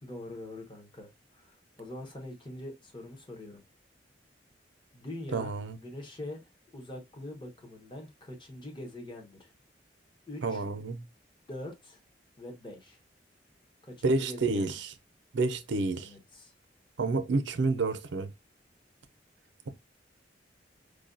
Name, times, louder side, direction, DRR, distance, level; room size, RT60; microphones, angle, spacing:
voice 1, 0.0-3.6 4.9-5.5 5.8-6.4 6.7-9.5 10.3-10.6 11.5-12.0 12.4-13.0 13.8-14.7 15.9-16.5, left 1 dB, 25° left, 0.9 m, -43 dB
voice 2, 5.3-5.8 10.4-11.0 14.0-14.9 15.3-16.1 17.0-18.3, right 3 dB, 80° right, 0.6 m, -29 dB
4.8 x 2.3 x 2.5 m
head